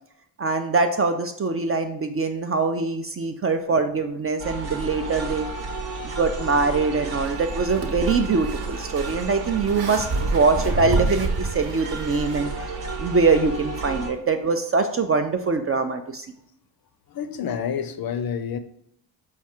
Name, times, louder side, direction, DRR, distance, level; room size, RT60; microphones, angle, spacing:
voice 1, 0.4-5.5 6.0-12.5 13.0-16.3, right 4 dB, 30° right, 0.4 m, -23 dB
sound 1, 4.4-14.1, right 3 dB, 75° right, 1.1 m, -32 dB
sound 2, 7.3-12.5, right 3 dB, 50° right, 0.9 m, -29 dB
voice 2, 17.1-18.6, left 7 dB, 50° left, 0.5 m, -29 dB
4.5 x 2.4 x 4.3 m
supercardioid pair, 55°, 49 cm